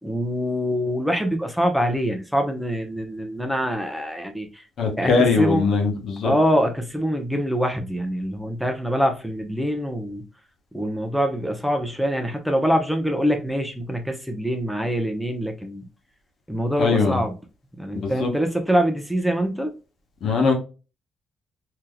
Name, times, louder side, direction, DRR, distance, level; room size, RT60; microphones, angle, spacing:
voice 1, 0.0-4.6 5.0-5.6 6.2-10.2 10.7-15.9 16.5-17.3 17.8-19.7, equal, ahead, 0.8 m, -24 dB
voice 2, 4.8-6.3 16.8-17.2 17.9-18.3 20.2-20.5, left 4 dB, 65° left, 1.0 m, -21 dB
3.5 x 2.9 x 2.2 m
cardioid pair, 90°, 0 cm